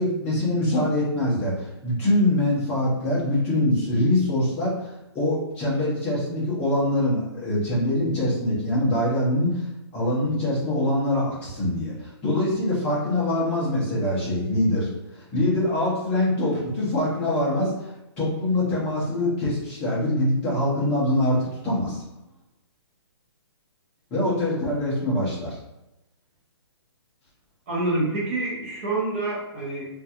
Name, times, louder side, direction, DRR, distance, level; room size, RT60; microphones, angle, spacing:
voice 1, 0.0-9.5 9.9-14.9 15.2-22.0 24.1-25.6, left 1 dB, 10° left, -8 dB, 0.6 m, -24 dB
voice 2, 27.7-29.9, right 2 dB, 30° right, -5 dB, 0.7 m, -27 dB
3.2 x 2.4 x 2.8 m, 0.92 s
hypercardioid pair, 175°, 14 cm